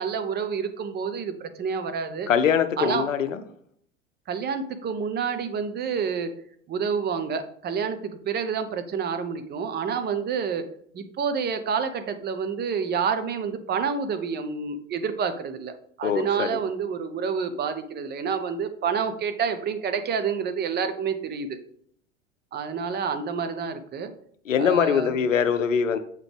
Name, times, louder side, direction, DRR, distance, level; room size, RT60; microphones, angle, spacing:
voice 1, 0.0-2.3 2.8-3.1 4.3-6.3 6.7-10.7 10.9-15.7 16.0-21.6 22.5-24.1 24.6-25.2, right 6 dB, 25° right, 8 dB, 0.6 m, -28 dB
voice 2, 2.3-3.4 16.0-16.5 24.5-26.0, left 7 dB, 85° left, 10 dB, 0.6 m, -22 dB
7.2 x 3.9 x 3.4 m, 0.65 s
figure-of-eight pair, 80°, 38 cm